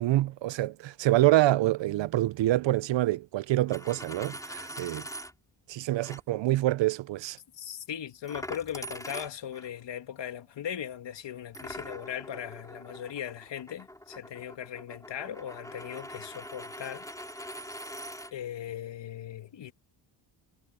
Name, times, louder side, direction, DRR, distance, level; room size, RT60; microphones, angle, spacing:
voice 1, 0.0-5.0 5.7-7.4, right 15 dB, 65° right, 0.7 m, -26 dB
Coin (dropping), 3.6-5.3 6.0-6.2 8.3-9.7 11.5-18.3, equal, 5° left, 4.3 m, -43 dB
voice 2, 7.6-17.1 18.3-19.7, left 9 dB, 60° left, 2.7 m, -38 dB
cardioid pair, 105°, 48 cm